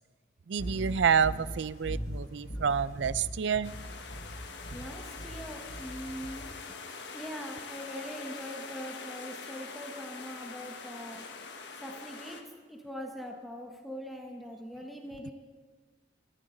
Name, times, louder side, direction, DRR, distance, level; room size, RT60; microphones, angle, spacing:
voice 1, 0.5-3.7, right 7 dB, 80° right, 17 dB, 0.4 m, -28 dB
sound 1, 0.6-6.6, equal, 55° left, 2.9 m, -40 dB
sound 2, 3.6-12.4, left 4 dB, 75° left, 1.4 m, -44 dB
voice 2, 4.7-6.5 7.1-11.2 11.8-12.4 12.7-15.3, equal, ahead, 1 dB, 1.3 m, -42 dB
18.5 x 13.5 x 3.9 m, 1.3 s
head